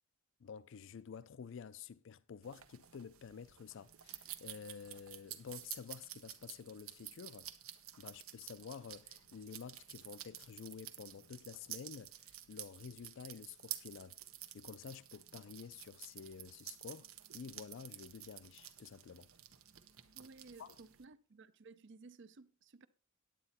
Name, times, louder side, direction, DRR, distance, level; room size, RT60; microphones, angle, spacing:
voice 1, 0.4-7.5 8.0-14.2 14.5-19.3 20.6-20.8, left 6 dB, 60° left, 0.4 m, -50 dB
sound 1, 2.4-21.0, right 12 dB, 85° right, 1.0 m, -51 dB
voice 2, 20.1-22.9, right 4 dB, 60° right, 0.6 m, -57 dB
10.0 x 8.7 x 4.2 m
head